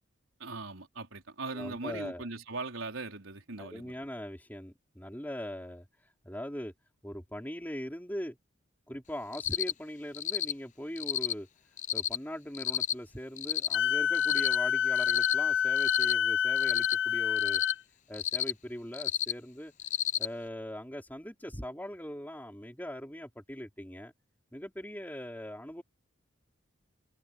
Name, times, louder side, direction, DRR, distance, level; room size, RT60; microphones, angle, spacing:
voice 1, 0.4-3.9, right 3 dB, 80° right, 4.1 m, -40 dB
voice 2, 1.5-2.3 3.6-5.8 6.2-6.7 7.0-8.4 8.9-11.5 11.9-17.6 18.1-19.7 20.2-24.1 24.5-25.8, equal, 10° left, 5.0 m, -41 dB
Cricket, 9.3-9.7 10.1-10.5 11.0-11.3 11.8-12.2 12.5-12.9 13.4-13.8 14.1-14.6 15.0-15.3 15.8-16.1 16.6-16.9 17.4-17.7 18.1-18.5 18.9-19.3 19.8-20.3, left 11 dB, 35° left, 0.7 m, -31 dB
Wind instrument woodwind instrument, 13.7-17.8, left 8 dB, 60° left, 0.9 m, -28 dB
open air
head